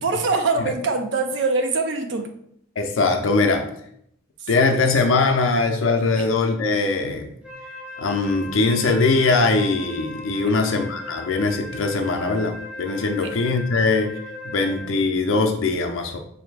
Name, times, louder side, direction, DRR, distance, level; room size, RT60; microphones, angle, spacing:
voice 1, 0.0-2.3 4.4-4.5 6.2-6.3 10.5-10.7 13.2-13.3, right 3 dB, 60° right, 5 dB, 0.5 m, -24 dB
voice 2, 2.8-3.6 4.5-7.3 8.0-14.1 14.4-16.2, left 3 dB, 80° left, 4 dB, 0.5 m, -21 dB
Wind instrument woodwind instrument, 7.4-15.1, left 2 dB, 5° right, 0.5 m, -38 dB
4.0 x 2.6 x 3.3 m, 0.70 s
head